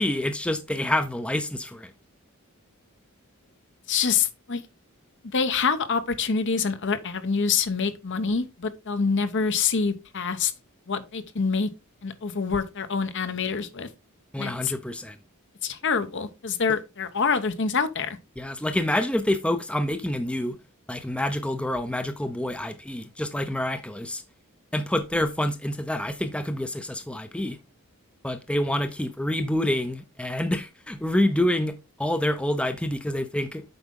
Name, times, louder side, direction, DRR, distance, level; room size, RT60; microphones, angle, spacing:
voice 1, 0.0-1.9 14.3-15.2 18.4-20.6 20.9-24.2 24.7-27.6 28.2-33.6, left 1 dB, 5° left, 0.5 m, -27 dB
voice 2, 3.9-4.6 5.3-10.5 10.9-11.7 12.0-13.9 14.4-14.7 15.6-18.2, left 5 dB, 55° left, 0.9 m, -26 dB
7.9 x 4.8 x 3.7 m
head